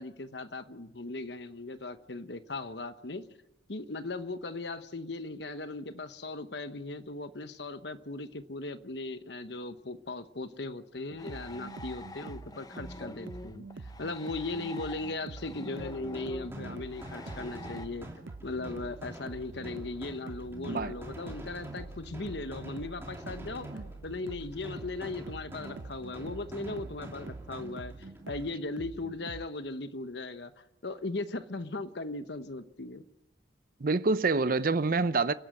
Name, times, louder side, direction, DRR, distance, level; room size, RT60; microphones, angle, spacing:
voice 1, 0.0-3.2 3.7-13.7 14.0-18.1 18.4-23.7 24.0-27.9 28.3-30.5 30.8-33.0, left 2 dB, 65° left, 1.1 m, -38 dB
sound 1, 11.1-29.5, right 3 dB, 85° right, 0.6 m, -46 dB
sound 2, 11.2-17.9, left 2 dB, 20° left, 0.7 m, -46 dB
sound 3, 15.7-28.5, equal, 15° right, 2.8 m, -47 dB
voice 2, 33.8-35.3, right 3 dB, 50° right, 0.6 m, -27 dB
30.0 x 11.5 x 7.8 m
head